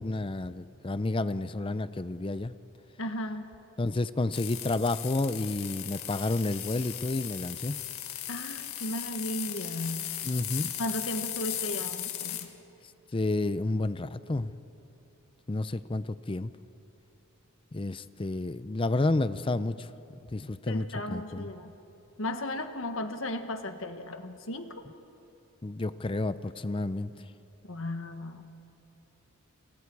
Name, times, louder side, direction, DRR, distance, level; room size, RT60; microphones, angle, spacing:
voice 1, 0.0-2.5 3.8-7.8 10.3-10.7 13.1-14.5 15.5-16.5 17.7-19.9 20.3-21.5 25.6-27.1, left 2 dB, 25° left, 14 dB, 0.5 m, -30 dB
voice 2, 3.0-3.5 8.3-10.1 10.8-12.5 20.6-21.8 22.2-24.8 27.6-28.4, left 1 dB, 65° left, 7 dB, 1.6 m, -35 dB
sound 1, 4.3-12.5, left 11 dB, 90° left, 1.7 m, -37 dB
29.0 x 28.5 x 4.8 m, 3.0 s
head